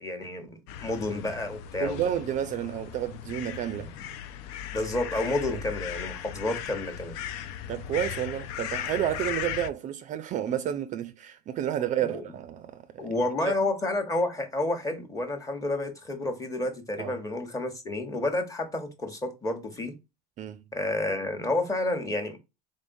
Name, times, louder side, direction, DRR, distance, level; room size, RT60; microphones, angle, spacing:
voice 1, 0.0-2.0 3.9-4.0 4.7-7.2 12.0-12.2 13.0-19.9 20.7-22.4, left 2 dB, 15° left, 1.0 m, -30 dB
sound 1, 0.7-9.7, left 10 dB, 80° left, 0.5 m, -37 dB
voice 2, 1.8-3.9 5.5-5.6 7.7-13.1 13.5-13.6 17.0-17.2 20.4-20.6, right 10 dB, 40° right, 0.4 m, -31 dB
3.7 x 3.6 x 2.6 m
supercardioid pair, 120°, 19 cm